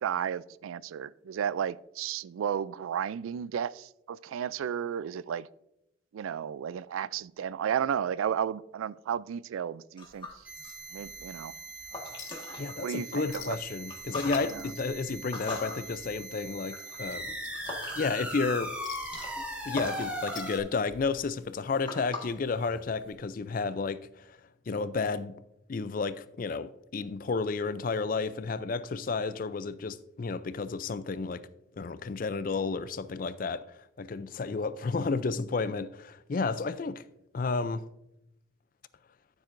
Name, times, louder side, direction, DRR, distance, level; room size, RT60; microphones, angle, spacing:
voice 1, 0.0-5.5 6.1-10.3 10.9-11.5 12.8-13.6 14.5-14.7, right 8 dB, 90° right, 0.3 m, -33 dB
sound 1, 10.0-12.7 13.2-18.3 18.6-23.1, left 3 dB, 25° left, 1.6 m, -43 dB
sound 2, 10.5-20.6, right 1 dB, 5° right, 1.2 m, -40 dB
Chink clink, 12.2-12.6 12.9-13.0 13.3-13.8 14.1-15.8 16.1-16.3 16.7-18.2 18.8-19.9 20.2-21.2 22.3-22.4, left 11 dB, 75° left, 0.7 m, -48 dB
voice 2, 12.6-17.4 18.0-18.7 19.7-24.4 24.7-25.4 25.7-31.4 31.8-33.6 34.0-37.0 37.3-37.9, left 4 dB, 45° left, 0.4 m, -32 dB
13.5 x 7.3 x 2.6 m
head